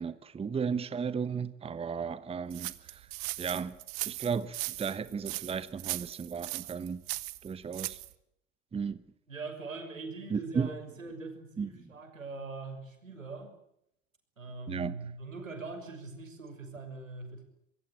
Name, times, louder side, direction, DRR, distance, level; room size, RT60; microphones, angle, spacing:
voice 1, 0.0-3.1 3.4-3.8 4.0-7.0 7.4-8.0 8.7-9.0 10.3-10.7 11.6-11.7 14.7-15.0, right 6 dB, 15° right, 1.1 m, -34 dB
sound 1, 2.5-8.1, right 23 dB, 55° right, 1.5 m, -38 dB
voice 2, 9.3-13.5 14.4-17.4, right 3 dB, 85° right, 6.3 m, -42 dB
25.0 x 22.0 x 8.0 m
figure-of-eight pair, 80°, 38 cm